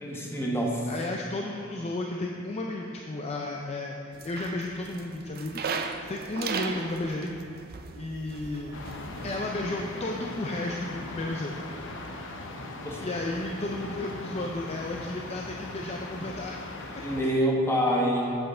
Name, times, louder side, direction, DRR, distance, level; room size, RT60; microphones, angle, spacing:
voice 1, 0.0-0.9 12.8-13.0 17.0-18.4, equal, 10° left, -2 dB, 1.2 m, -26 dB
voice 2, 0.9-7.3 8.0-8.8 9.2-11.6 13.0-16.6 16.9-17.0, left 2 dB, 30° left, 0 dB, 0.5 m, -33 dB
sound 1, 4.1-9.4, right 5 dB, 45° right, 0.5 m, -37 dB
sound 2, 8.7-17.2, left 2 dB, 60° left, 0.7 m, -39 dB
7.9 x 7.6 x 4.3 m, 2.7 s
head